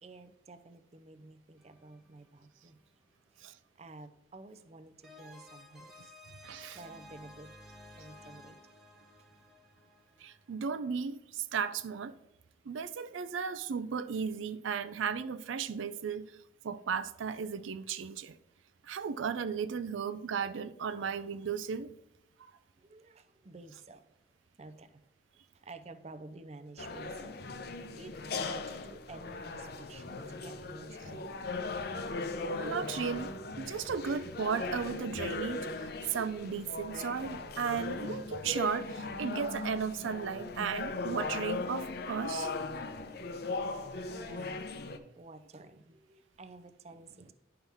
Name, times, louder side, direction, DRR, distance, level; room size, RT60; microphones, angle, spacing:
voice 1, 0.0-2.8 3.3-3.5 3.8-6.1 6.7-7.5 8.0-8.7 22.8-24.2 24.6-25.1 25.5-31.5 32.5-32.6 43.5-44.6 45.2-47.3, right 2 dB, 35° right, 0.5 m, -51 dB
sound 1, 1.6-2.6 5.0-10.6, left 1 dB, ahead, 0.8 m, -55 dB
voice 2, 6.4-6.8 10.2-12.2 12.7-16.3 16.6-18.4 18.8-21.9 32.6-42.5, right 6 dB, 90° right, 0.4 m, -35 dB
sound 2, 26.8-45.0, left 3 dB, 55° left, 0.6 m, -38 dB
10.5 x 5.7 x 3.5 m
head